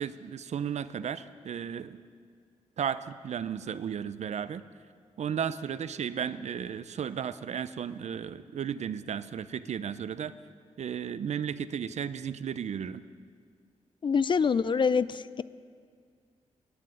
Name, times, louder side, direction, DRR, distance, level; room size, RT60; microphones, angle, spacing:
voice 1, 0.0-2.0 2.8-4.6 5.2-10.3 10.8-13.0, right 8 dB, 65° right, 14 dB, 0.5 m, -34 dB
voice 2, 14.0-15.4, left 5 dB, 40° left, 17 dB, 0.3 m, -25 dB
11.5 x 7.6 x 9.0 m, 2.1 s
cardioid pair, 65°, 13 cm